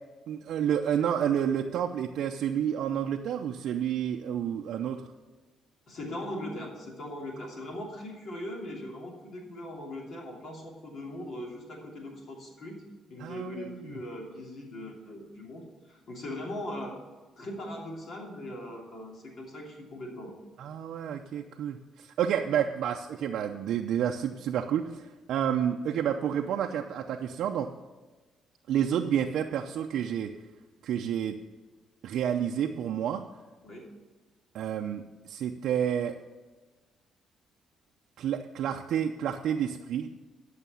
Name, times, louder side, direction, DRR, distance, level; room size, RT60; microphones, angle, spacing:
voice 1, 0.3-5.0 13.2-13.8 20.6-27.7 28.7-30.3 30.8-31.4 32.0-33.2 34.5-36.2 38.2-40.2, right 9 dB, 80° right, 2 dB, 0.5 m, -30 dB
voice 2, 5.9-12.8 13.1-16.9 17.4-20.3 33.6-33.9, left 1 dB, 60° left, -1 dB, 3.0 m, -40 dB
11.0 x 6.6 x 7.0 m, 1.2 s
cardioid pair, 90°, 0 cm